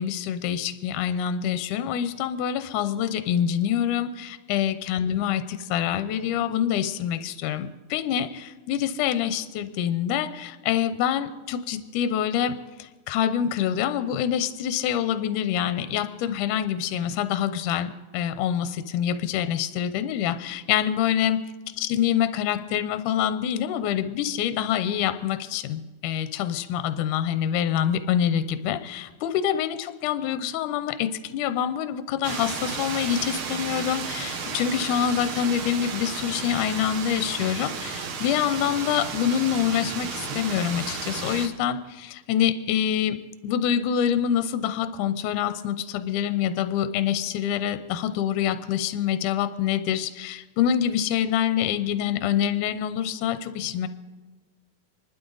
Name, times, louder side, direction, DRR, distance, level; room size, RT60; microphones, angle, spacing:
voice 1, 0.0-21.4 21.7-43.2 43.4-53.9, left 9 dB, 75° left, 12 dB, 2.0 m, -26 dB
sound 1, 32.2-41.5, right 5 dB, 75° right, 1.2 m, -33 dB
26.0 x 12.0 x 3.9 m, 1.3 s
omnidirectional pair, 4.0 m